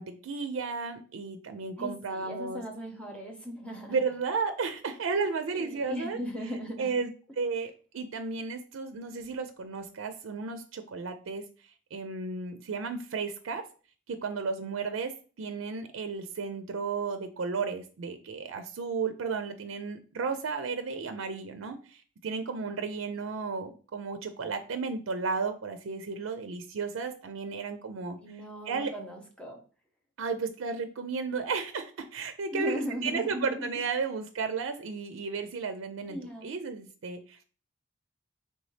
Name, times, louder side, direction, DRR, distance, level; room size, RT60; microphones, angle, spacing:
voice 1, 0.0-2.6 3.9-6.2 6.8-11.4 11.9-13.6 14.1-15.1 15.4-28.2 28.7-28.9 30.2-37.4, right 4 dB, 85° right, 8 dB, 0.4 m, -33 dB
voice 2, 1.8-4.0 5.5-6.9 28.2-29.6 32.5-33.7 36.1-36.5, equal, 5° left, 0 dB, 0.8 m, -38 dB
4.0 x 3.3 x 3.2 m, 0.39 s
head